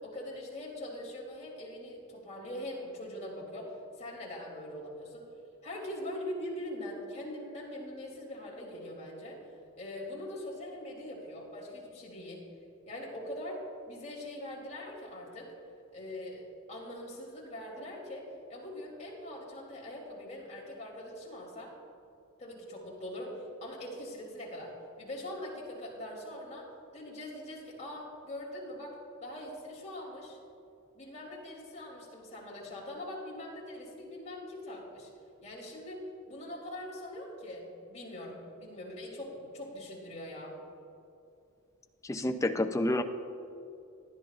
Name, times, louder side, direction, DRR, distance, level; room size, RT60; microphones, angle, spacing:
voice 1, 0.0-3.7 4.0-5.2 5.6-9.4 9.8-12.4 12.9-15.5 15.9-21.7 22.4-26.7 26.9-28.9 29.2-30.4 30.9-35.1 35.4-40.6, left 1 dB, 35° left, -4 dB, 2.9 m, -42 dB
voice 2, 42.0-43.0, left 1 dB, 15° left, 7 dB, 0.5 m, -29 dB
18.0 x 11.0 x 2.4 m, 2.7 s
head